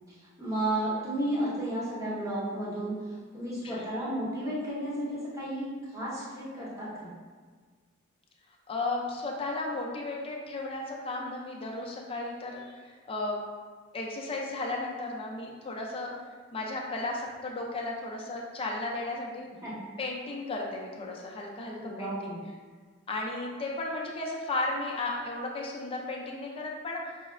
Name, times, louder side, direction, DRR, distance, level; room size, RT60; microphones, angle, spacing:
voice 1, 0.4-7.1 19.6-19.7 21.8-22.4, right 1 dB, 15° right, -8 dB, 0.9 m, -33 dB
voice 2, 8.7-13.4 13.9-16.1 16.5-19.5 20.0-22.3 23.1-27.2, left 2 dB, 25° left, -1 dB, 0.4 m, -34 dB
5.5 x 2.0 x 2.4 m, 1.5 s
head